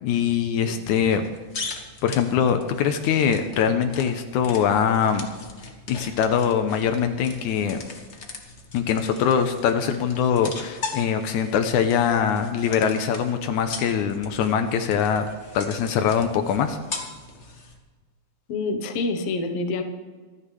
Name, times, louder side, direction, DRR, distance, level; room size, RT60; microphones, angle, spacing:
voice 1, 0.0-1.3 1.5-1.7 2.0-5.3 5.9-7.8 8.7-15.3 15.5-16.8, left 7 dB, 85° left, 7 dB, 2.2 m, -23 dB
sound 1, 1.1-17.8, left 4 dB, 45° left, 0.9 m, -40 dB
voice 2, 18.5-19.8, left 3 dB, 60° left, 6 dB, 2.0 m, -27 dB
25.0 x 9.9 x 3.3 m, 1.4 s
omnidirectional pair, 3.5 m